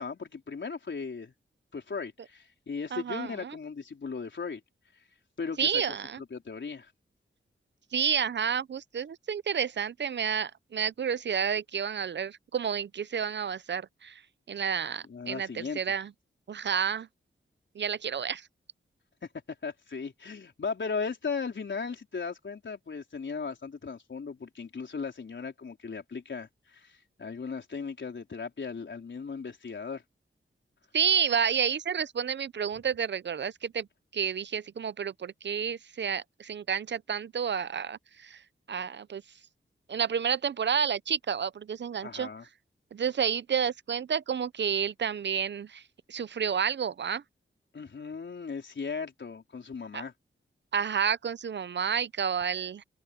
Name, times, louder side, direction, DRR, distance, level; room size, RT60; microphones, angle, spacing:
voice 1, 0.0-1.3 1.7-4.6 5.4-6.9 15.1-15.8 19.6-30.0 42.0-42.4 47.7-50.1, left 5 dB, 65° left, 4.4 m, -37 dB
voice 2, 2.9-3.5 5.6-6.2 7.9-14.2 14.5-16.1 16.5-17.1 17.7-18.5 30.9-33.9 34.1-38.4 38.7-39.2 39.9-42.3 42.9-45.8 46.1-47.2 49.9-50.0 50.7-52.8, right 7 dB, 60° right, 0.5 m, -30 dB
open air
wide cardioid pair, 105°, 21 cm